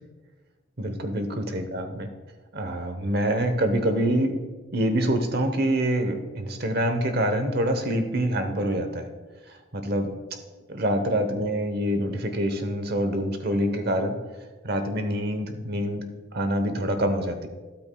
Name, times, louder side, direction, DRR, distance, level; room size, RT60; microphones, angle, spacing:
voice 1, 0.8-2.1 2.5-4.4 4.7-9.1 9.5-10.1 10.7-14.2 14.6-16.0 16.3-17.5, right 1 dB, 50° right, 7 dB, 1.0 m, -26 dB
12.5 x 12.0 x 2.3 m, 1.3 s
head